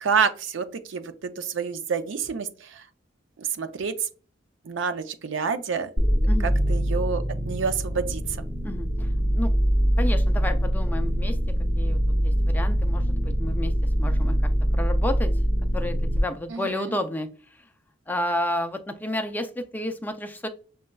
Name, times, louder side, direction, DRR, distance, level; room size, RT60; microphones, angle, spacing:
voice 1, 0.0-2.8 3.4-3.9 4.7-5.9 6.4-8.2 16.5-16.9, right 6 dB, 75° right, 10 dB, 0.5 m, -28 dB
sound 1, 6.0-16.2, equal, 25° right, 0.8 m, -23 dB
voice 2, 8.6-9.5 10.0-11.4 11.8-13.7 14.0-14.4 14.7-15.3 15.7-17.3 18.1-20.5, left 1 dB, 10° left, 8 dB, 0.3 m, -31 dB
6.1 x 2.2 x 2.2 m, 0.39 s
head